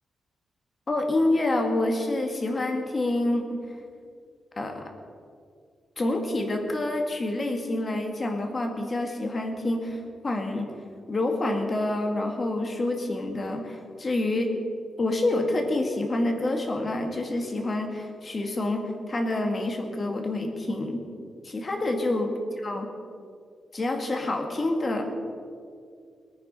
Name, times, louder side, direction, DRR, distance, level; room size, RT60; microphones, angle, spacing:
voice 1, 0.9-3.4 4.6-4.8 6.0-10.7 11.1-14.5 15.0-21.0 21.4-22.3 22.6-22.9 23.7-25.0, left 2 dB, 30° left, 3 dB, 1.9 m, -27 dB
22.0 x 9.5 x 5.5 m, 2.3 s
wide cardioid pair, 155°, 0 cm